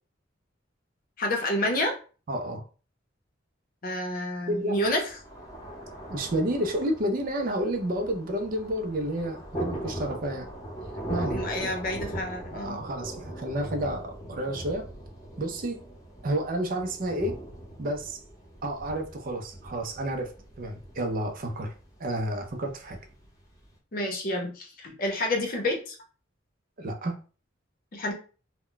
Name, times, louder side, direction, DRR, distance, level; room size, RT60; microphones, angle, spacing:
voice 1, 1.2-2.0 3.8-5.0 11.3-12.8 23.9-26.0 27.9-28.1, left 1 dB, 50° left, 2 dB, 0.7 m, -29 dB
voice 2, 2.3-2.6 4.5-4.7 6.1-10.5 11.1-11.7 12.5-14.9 15.4-15.8 16.2-17.4 17.8-18.2 18.6-20.3 20.6-21.7 22.0-23.0 26.8-27.2, right 1 dB, 45° right, 4 dB, 0.5 m, -30 dB
Thunder, 4.8-23.7, right 1 dB, 20° left, 0.9 m, -40 dB
2.2 x 2.1 x 3.8 m, 0.37 s
head